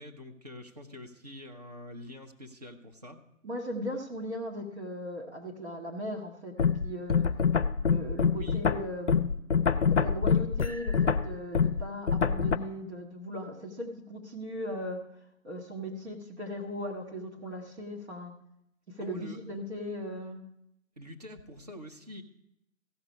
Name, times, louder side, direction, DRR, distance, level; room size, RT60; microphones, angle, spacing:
voice 1, 0.0-3.2 8.3-8.6 19.0-19.4 21.0-22.2, left 1 dB, 30° right, 3 dB, 0.9 m, -45 dB
voice 2, 3.4-7.3 7.8-9.3 9.8-15.1 15.4-18.3 18.9-20.5, equal, 50° right, 0 dB, 1.8 m, -38 dB
sound 1, 6.6-12.6, left 6 dB, 55° left, 0.6 m, -25 dB
15.0 x 6.1 x 5.4 m, 0.78 s
figure-of-eight pair, 155°, 42 cm